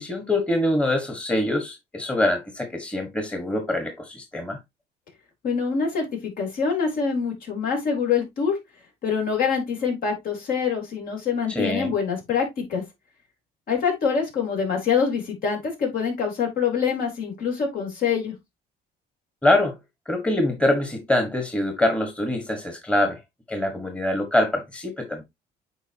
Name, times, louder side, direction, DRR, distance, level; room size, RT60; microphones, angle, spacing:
voice 1, 0.0-4.6 11.5-11.9 19.4-19.8 20.1-23.2 23.5-25.2, left 1 dB, 5° left, 1.4 m, -24 dB
voice 2, 5.4-8.6 9.0-12.8 13.7-18.3, left 6 dB, 60° left, 3.4 m, -25 dB
8.1 x 4.7 x 2.8 m
cardioid pair, 110°, 17 cm